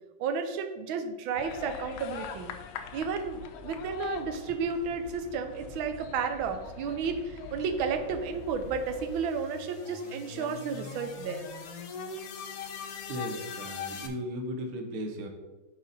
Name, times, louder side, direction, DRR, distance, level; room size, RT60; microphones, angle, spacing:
voice 1, 0.2-2.5 2.9-11.4, right 5 dB, 80° right, 8 dB, 1.5 m, -32 dB
sound 1, 1.3-9.2, left 7 dB, 85° left, 1.4 m, -43 dB
sound 2, 7.7-14.1, left 6 dB, 60° left, 1.0 m, -42 dB
voice 2, 13.1-15.3, equal, 55° right, 4 dB, 1.2 m, -36 dB
9.3 x 4.1 x 4.1 m, 1.2 s
omnidirectional pair, 2.2 m